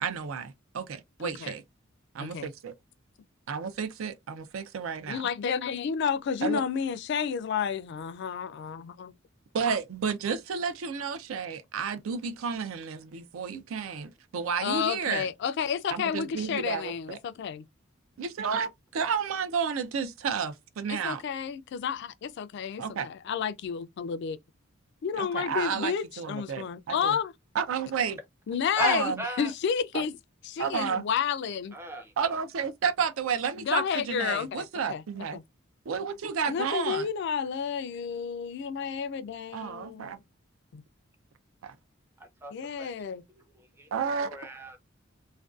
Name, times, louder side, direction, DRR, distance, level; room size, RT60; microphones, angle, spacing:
voice 1, 0.0-1.6 2.1-2.7 3.5-5.2 6.4-6.6 9.5-15.3 15.9-17.2 18.2-21.2 22.8-23.1 25.2-27.2 27.5-28.2 28.8-29.2 29.9-30.1 30.6-31.0 32.2-35.4 35.9-37.1 39.5-40.2 41.6-41.8 43.9-44.4, right 6 dB, 80° right, 0.4 m, -31 dB
voice 2, 1.2-1.5 2.2-2.5 5.1-9.1 14.6-17.6 20.9-24.4 25.0-27.3 28.5-30.2 30.4-31.8 33.6-35.0 35.3-35.4 36.5-40.1 40.7-40.8 42.5-43.2, left 7 dB, 55° left, 0.3 m, -31 dB
voice 3, 28.7-29.5 31.7-32.1 42.2-42.5 42.8-42.9 43.8-43.9 44.3-44.8, right 1 dB, 10° right, 0.5 m, -35 dB
2.5 x 2.2 x 2.3 m
head